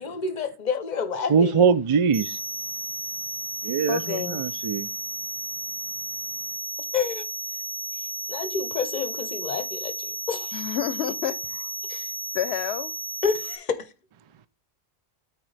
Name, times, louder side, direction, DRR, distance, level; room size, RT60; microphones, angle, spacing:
voice 1, 0.0-1.7 6.9-7.2 8.3-10.6 11.9-12.1 13.2-13.9, left 5 dB, 45° left, 0.8 m, -29 dB
voice 2, 1.3-2.4 3.6-4.9, right 6 dB, 50° right, 0.3 m, -22 dB
sound 1, 2.1-13.6, right 2 dB, 15° right, 0.9 m, -33 dB
voice 3, 3.9-4.4 10.5-11.7 12.3-12.9, left 9 dB, 75° left, 0.8 m, -29 dB
13.0 x 4.4 x 3.2 m
omnidirectional pair, 1.1 m